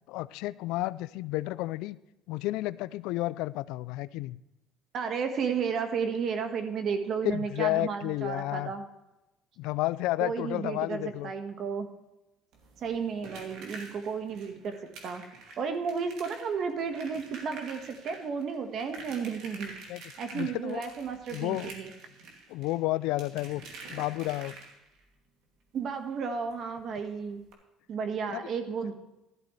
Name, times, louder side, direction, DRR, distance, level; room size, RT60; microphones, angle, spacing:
voice 1, 0.1-2.0 2.3-4.4 7.2-8.7 9.6-11.3 19.9-20.0 20.3-20.9 21.3-21.7 22.5-23.6 23.9-24.5 28.3-28.4, left 18 dB, 80° left, 18 dB, 0.4 m, -31 dB
voice 2, 4.9-8.8 10.2-11.9 12.8-14.8 15.0-15.2 15.6-19.7 20.2-21.9 25.7-27.4 27.9-28.9, right 6 dB, 50° right, 7 dB, 1.5 m, -33 dB
sound 1, 12.5-25.0 26.5-26.6 26.9-27.0 27.4-27.5, right 3 dB, 75° right, 2.6 m, -47 dB
13.0 x 12.0 x 3.3 m, 0.98 s
cardioid pair, 120°, 0 cm